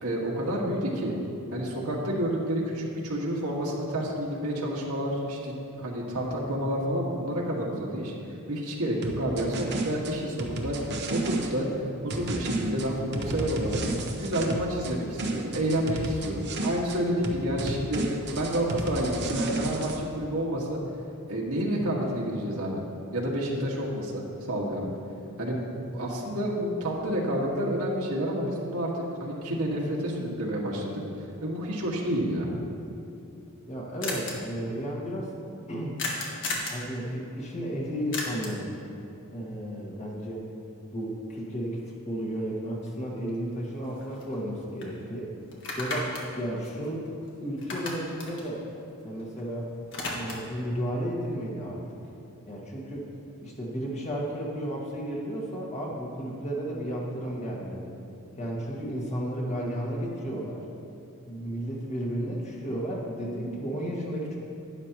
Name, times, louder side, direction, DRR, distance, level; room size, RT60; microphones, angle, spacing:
voice 1, 0.0-1.1 1.5-8.1 8.5-11.7 12.0-13.8 14.2-18.0 18.3-20.8 21.3-22.8 23.1-24.9 25.4-25.6 25.9-31.0 31.4-32.5, equal, 80° right, -4 dB, 1.9 m, -29 dB
sound 1, 9.0-11.5 12.1-14.9 15.2-17.0 17.2-20.0, right 2 dB, 50° right, 0.9 m, -32 dB
sound 2, 33.6-33.7 34.0-34.3 36.0-36.8 38.1-38.7 42.9-43.0 43.3-44.5 44.8-44.9 45.5-47.3 47.6-49.4 49.7-50.6, left 2 dB, 55° left, 1.7 m, -35 dB
voice 2, 33.7-35.3 35.7-36.0 36.7-38.7 39.3-40.4 40.9-45.3 45.8-47.0 47.4-48.7 49.0-49.7 50.1-51.8 52.5-53.1 53.4-57.9 58.4-60.6 61.3-64.4, equal, 30° left, -3 dB, 1.7 m, -33 dB
12.0 x 10.0 x 3.1 m, 2.6 s
head